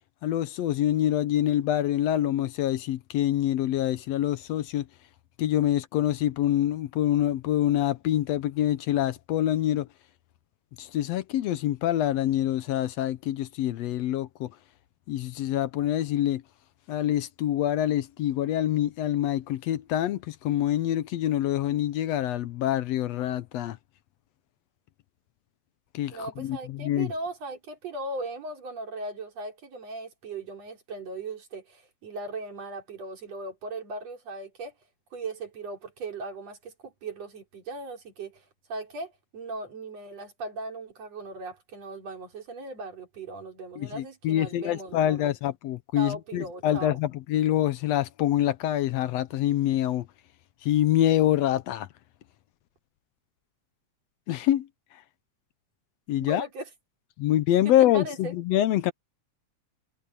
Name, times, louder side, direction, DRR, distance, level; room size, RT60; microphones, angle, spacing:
voice 1, 0.2-4.9 5.4-9.9 10.8-14.5 15.1-16.4 16.9-23.8 25.9-27.1 43.8-50.1 50.6-51.9 54.3-54.7 56.1-56.4 57.2-58.9, left 12 dB, 75° left, 1.7 m, -26 dB
voice 2, 26.1-34.7 35.1-38.4 38.7-45.3 46.0-47.0 56.2-56.7 57.7-58.3, right 2 dB, 60° right, 5.1 m, -38 dB
omnidirectional pair, 3.3 m